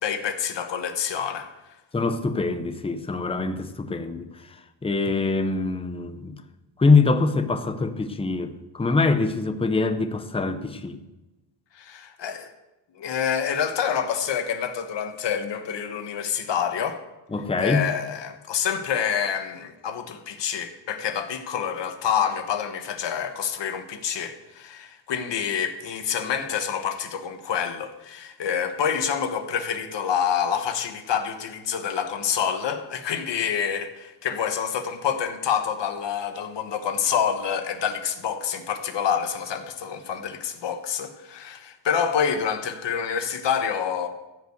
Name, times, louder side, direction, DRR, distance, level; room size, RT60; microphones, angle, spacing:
voice 1, 0.0-1.5 11.7-12.5 13.0-17.0 17.6-44.1, left 7 dB, 60° left, 1.2 m, -27 dB
voice 2, 1.9-4.6 4.8-6.4 6.8-11.0 17.3-17.9, left 3 dB, 10° left, 0.6 m, -24 dB
15.0 x 5.5 x 7.9 m
wide cardioid pair, 155°, 48 cm